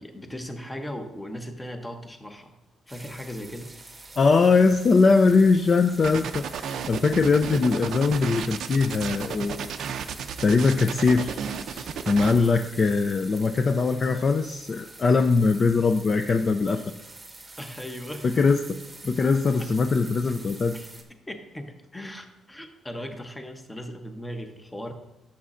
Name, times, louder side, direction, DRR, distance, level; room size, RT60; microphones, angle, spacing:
voice 1, 0.0-2.6 2.9-3.7 12.2-12.6 17.6-18.4 19.6-19.7 20.7-20.9 21.3-24.9, equal, 10° left, 6 dB, 0.7 m, -38 dB
sound 1, 2.9-21.0, right 2 dB, 15° right, 0.9 m, -46 dB
voice 2, 4.2-9.7 10.4-11.4 11.7-16.8 18.4-18.8 19.0-20.7, left 4 dB, 30° left, 7 dB, 0.3 m, -21 dB
sound 2, 6.0-12.3, right 8 dB, 60° right, 0.4 m, -33 dB
12.5 x 7.1 x 2.5 m, 0.97 s
cardioid pair, 170°, 0 cm